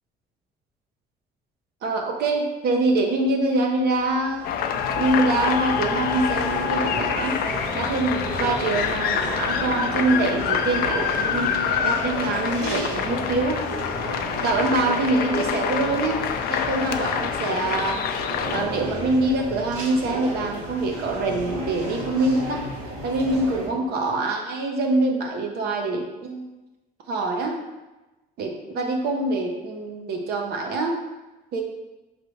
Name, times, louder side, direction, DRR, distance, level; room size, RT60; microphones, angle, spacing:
voice 1, 1.8-4.4 5.0-7.3 7.7-13.6 14.4-16.2 16.5-18.0 18.5-22.6 23.0-26.5 27.1-27.6 28.4-31.0 31.5-31.6, right 2 dB, 70° right, 2 dB, 0.8 m, -24 dB
sound 1, 3.9-23.7, right 1 dB, 85° right, 1.5 m, -33 dB
sound 2, 4.4-18.6, left 8 dB, 65° left, 0.4 m, -26 dB
5.1 x 3.2 x 3.2 m, 1.1 s
cardioid pair, 110°, 17 cm